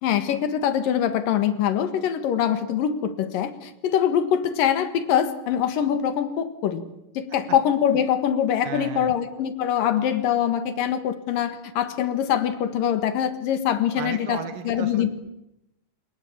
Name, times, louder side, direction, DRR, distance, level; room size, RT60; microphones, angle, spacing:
voice 1, 0.0-6.8 7.2-15.1, left 9 dB, 90° left, 11 dB, 3.4 m, -23 dB
voice 2, 8.6-9.1 14.0-15.1, right 8 dB, 90° right, 9 dB, 3.3 m, -34 dB
27.5 x 19.0 x 8.7 m, 0.88 s
omnidirectional pair, 3.8 m